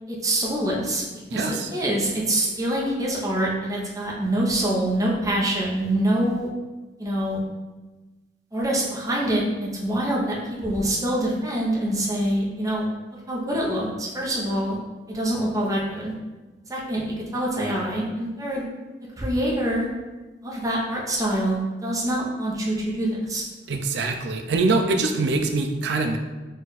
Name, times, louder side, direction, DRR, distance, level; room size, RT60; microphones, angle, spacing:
voice 1, 0.1-1.0 1.3-6.5 7.0-7.4 8.5-10.4 10.6-12.9 13.3-14.8 15.1-16.1 16.7-18.6 19.2-19.9 20.4-23.4, right 1 dB, 20° right, -4 dB, 0.8 m, -25 dB
voice 2, 1.3-1.7 23.7-26.2, right 3 dB, 70° right, 4 dB, 0.4 m, -23 dB
4.3 x 2.4 x 4.0 m, 1.2 s
head